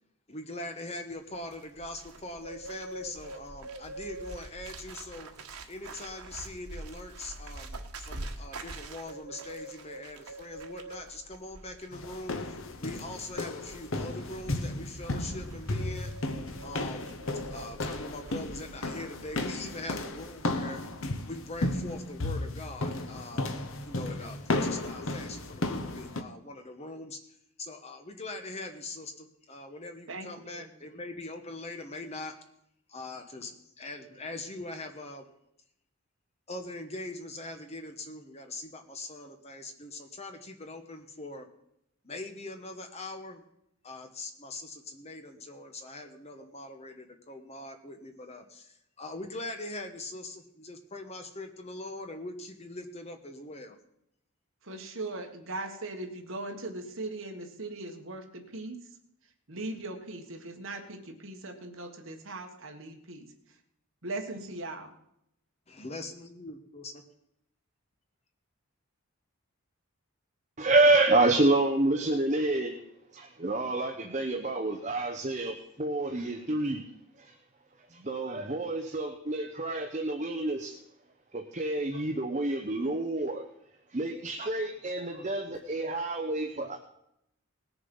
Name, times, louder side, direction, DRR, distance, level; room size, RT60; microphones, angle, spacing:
voice 1, 0.3-5.3 5.7-12.4 12.8-16.1 16.6-17.1 17.5-20.8 21.3-23.5 23.8-27.2 27.6-32.3 32.9-35.3 36.5-41.5 42.0-43.4 43.8-53.8 65.7-66.9, left 2 dB, 30° left, 6 dB, 1.1 m, -42 dB
Bird, 1.2-19.0 19.2-19.6, right 2 dB, 85° right, 1.5 m, -45 dB
sound 1, 11.9-26.2, left 2 dB, 65° left, 1.1 m, -34 dB
voice 2, 30.1-30.7 54.6-58.9 59.5-63.3 64.0-64.9, right 2 dB, 60° right, 4 dB, 1.6 m, -39 dB
voice 3, 70.6-72.8 73.1-76.8 77.2-77.3 77.9-80.8 81.3-83.5 83.9-86.8, right 2 dB, 35° right, 5 dB, 0.8 m, -28 dB
19.0 x 6.9 x 5.4 m, 0.78 s
head